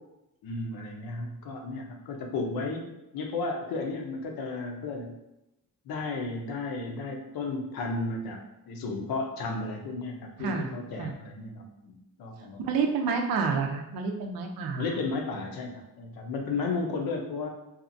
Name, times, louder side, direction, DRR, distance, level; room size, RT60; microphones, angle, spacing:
voice 1, 0.4-2.9 3.1-5.1 5.9-8.4 8.7-12.8 14.8-17.5, left 3 dB, 85° left, 2 dB, 0.6 m, -33 dB
voice 2, 10.4-11.2 12.6-14.9, right 5 dB, 80° right, 2 dB, 0.5 m, -29 dB
2.8 x 2.3 x 2.5 m, 0.90 s
cardioid pair, 140°, 35 cm